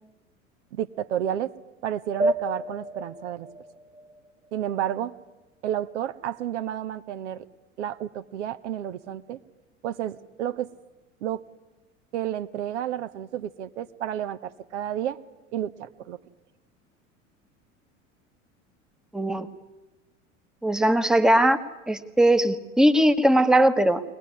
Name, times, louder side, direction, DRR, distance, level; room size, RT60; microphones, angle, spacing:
voice 1, 0.7-1.5 1.8-3.5 4.5-5.2 5.6-7.4 7.8-9.4 9.8-10.7 11.2-11.4 12.1-15.2 15.5-16.2, right 11 dB, 60° right, 12 dB, 1.0 m, -31 dB
sound 1, 2.2-5.2, right 1 dB, 90° right, 1.4 m, -31 dB
voice 2, 19.1-19.5 20.6-21.6 21.9-24.0, right 1 dB, ahead, 11 dB, 1.1 m, -20 dB
23.0 x 19.0 x 9.7 m, 1.1 s
figure-of-eight pair, 75°, 39 cm